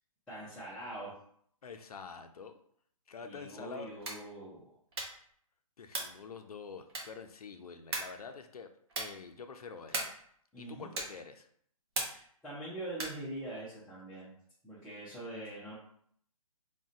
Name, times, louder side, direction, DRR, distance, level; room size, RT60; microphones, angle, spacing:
voice 1, 0.3-1.1 3.2-4.7 10.5-10.9 12.0-14.3 14.6-15.7, right 1 dB, 5° left, -12 dB, 0.4 m, -43 dB
voice 2, 1.6-2.6 3.1-3.9 5.8-8.7 9.0-10.1 10.6-11.5, left 5 dB, 90° left, 7 dB, 0.5 m, -47 dB
sound 1, 3.9-4.3 4.9-5.3 5.9-6.2 6.9-7.3 7.9-8.2 8.9-9.2 9.9-10.3 10.9-11.3 11.9-12.3 12.9-13.3, right 2 dB, 45° right, 0.8 m, -38 dB
2.4 x 2.2 x 3.7 m, 0.64 s
hypercardioid pair, 150°, 19 cm